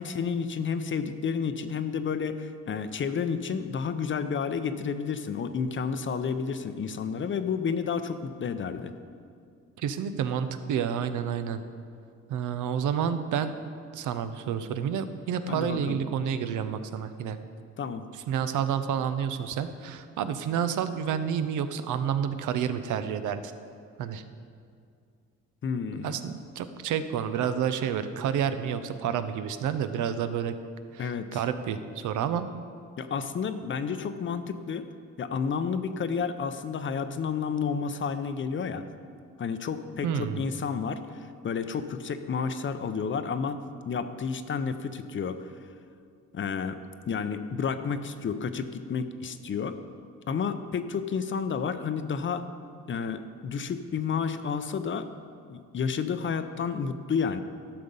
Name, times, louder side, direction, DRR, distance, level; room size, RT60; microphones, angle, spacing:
voice 1, 0.0-8.9 15.5-16.0 17.8-18.1 25.6-26.2 31.0-31.4 33.0-34.9 35.2-38.8 39.4-43.6 43.8-45.4 46.3-46.8 47.1-49.8 50.3-52.4 52.9-55.1 55.5-57.4, left 6 dB, 40° left, 10 dB, 0.6 m, -31 dB
voice 2, 9.8-11.6 12.3-13.5 13.9-17.4 18.3-23.4 24.0-24.2 26.0-30.5 30.9-32.5 40.0-40.4, right 8 dB, 80° right, 10 dB, 0.7 m, -29 dB
12.0 x 6.6 x 5.4 m, 2.3 s
cardioid pair, 90°, 30 cm